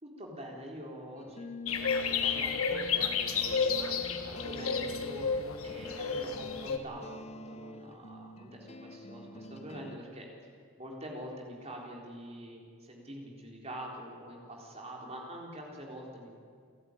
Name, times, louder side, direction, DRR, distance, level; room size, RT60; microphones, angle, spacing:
voice 1, 0.0-5.3 5.6-10.3 10.8-16.3, equal, 30° right, 0 dB, 4.0 m, -45 dB
sound 1, 1.2-10.0, left 3 dB, 30° left, 0.9 m, -46 dB
sound 2, 1.7-6.8, left 5 dB, 80° left, 1.7 m, -31 dB
28.5 x 12.5 x 9.9 m, 2.1 s
head